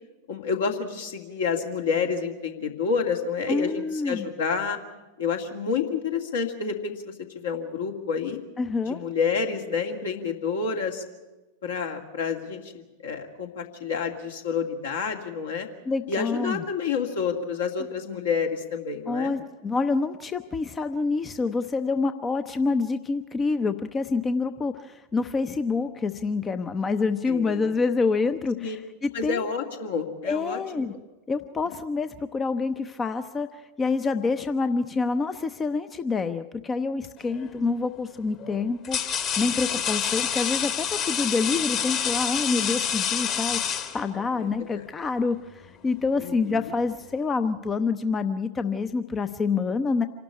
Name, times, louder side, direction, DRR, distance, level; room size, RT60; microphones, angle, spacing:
voice 1, 0.3-4.8 5.2-8.4 8.9-11.0 11.6-15.7 16.1-19.3 27.3-27.7 28.6-28.8 29.1-31.0 31.7-31.8 44.4-44.5 44.7-44.8 46.2-46.7, left 5 dB, 65° left, 3 dB, 2.3 m, -29 dB
voice 2, 3.5-4.3 8.6-9.0 15.9-16.6 19.1-29.4 30.2-30.9 31.3-50.0, left 4 dB, 20° left, 11 dB, 0.6 m, -27 dB
sound 1, 37.3-37.6 38.4-44.4, left 8 dB, 40° left, 2.0 m, -28 dB
26.5 x 12.0 x 9.8 m, 1.2 s
figure-of-eight pair, 90°, 0 cm